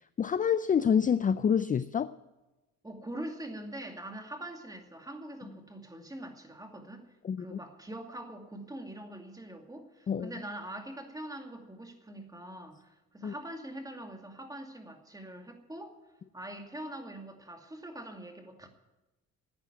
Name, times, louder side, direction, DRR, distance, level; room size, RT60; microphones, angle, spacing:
voice 1, 0.2-2.1 7.2-7.6 10.1-10.3 13.2-13.3, left 7 dB, 25° left, 14 dB, 0.4 m, -27 dB
voice 2, 2.8-7.1 7.4-15.9 16.3-18.7, right 1 dB, 10° right, 4 dB, 2.3 m, -43 dB
10.5 x 9.5 x 9.5 m, 1.1 s
cardioid pair, 90°, 30 cm